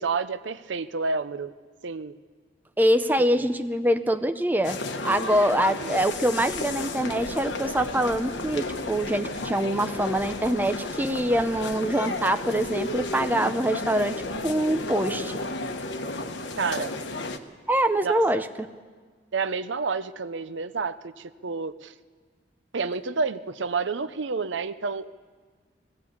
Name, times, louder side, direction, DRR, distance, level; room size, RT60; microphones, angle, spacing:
voice 1, 0.0-1.5 1.8-2.1 3.4-3.5 16.6-17.0 18.0-18.4 19.3-21.9 22.7-25.1, right 4 dB, 80° right, 13 dB, 0.7 m, -29 dB
voice 2, 2.8-4.8 5.0-15.4 17.7-18.5, right 1 dB, 10° right, 7 dB, 0.6 m, -24 dB
sound 1, 4.6-17.4, left 2 dB, 75° left, 1.2 m, -33 dB
20.5 x 15.5 x 8.6 m, 1.5 s
head